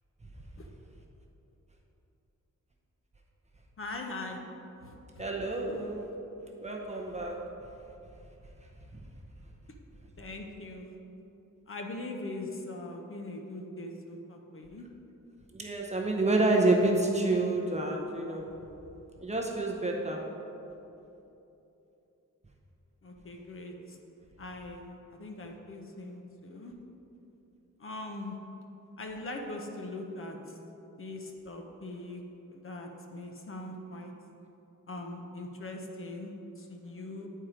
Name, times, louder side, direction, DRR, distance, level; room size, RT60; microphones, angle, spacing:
voice 1, 3.8-4.4 4.8-5.2 10.2-11.0 11.7-14.9 23.0-24.0 24.4-26.7 27.8-28.3 29.0-30.6 31.0-32.2 32.5-34.1 34.9-37.3, left 2 dB, 40° left, 2 dB, 0.7 m, -41 dB
voice 2, 5.2-6.1 6.6-7.4 8.9-9.0 15.5-18.5 19.2-20.3, right 2 dB, 20° right, 0 dB, 0.7 m, -28 dB
8.7 x 4.5 x 5.0 m, 2.9 s
wide cardioid pair, 165°, 32 cm